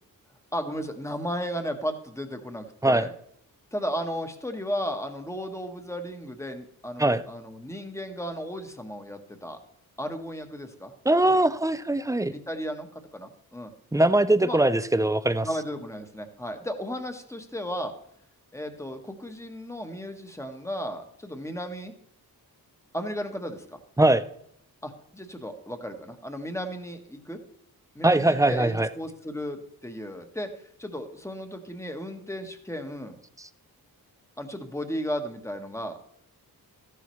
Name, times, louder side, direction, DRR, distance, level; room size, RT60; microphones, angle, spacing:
voice 1, 0.5-3.1 3.7-9.6 10.0-10.9 11.2-11.4 12.3-13.7 14.4-14.6 15.4-17.9 18.5-21.9 22.9-23.8 24.8-27.4 27.9-30.5 30.8-33.2 34.4-36.0, equal, 10° left, 6 dB, 1.2 m, -34 dB
voice 2, 11.1-12.3 13.9-15.5 24.0-24.2 28.0-28.9 33.4-33.5, right 1 dB, 10° right, 13 dB, 0.4 m, -21 dB
14.0 x 11.0 x 3.2 m, 0.71 s
wide cardioid pair, 150°, 38 cm